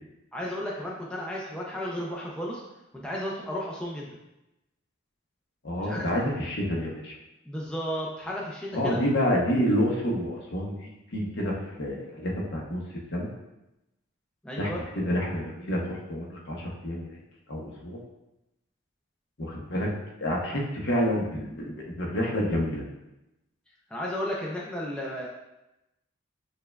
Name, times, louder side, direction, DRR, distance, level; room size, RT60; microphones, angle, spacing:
voice 1, 0.3-2.6 2.9-4.1 5.8-6.1 7.5-9.0 14.4-14.8 23.9-25.3, equal, 5° left, -4 dB, 0.3 m, -33 dB
voice 2, 5.6-7.1 8.7-13.3 14.6-17.2 17.5-18.0 19.4-19.9 20.2-22.8, equal, 55° left, -2 dB, 0.7 m, -28 dB
6.5 x 2.2 x 2.2 m, 0.94 s
head